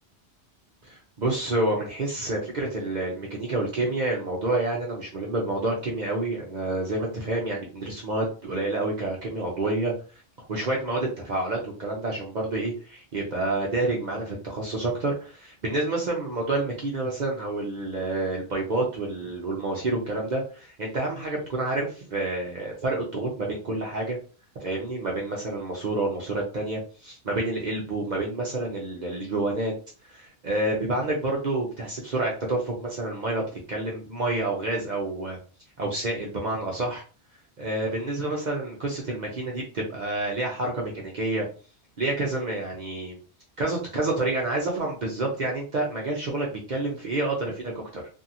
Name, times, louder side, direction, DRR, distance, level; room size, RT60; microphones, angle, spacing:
voice 1, 0.8-9.9 10.4-24.2 24.6-29.7 30.1-33.4 33.7-35.4 35.8-37.0 37.6-41.5 42.0-43.2 43.6-48.0, right 2 dB, 50° right, -1 dB, 0.7 m, -28 dB
2.8 x 2.6 x 2.5 m, 0.37 s
omnidirectional pair, 1.1 m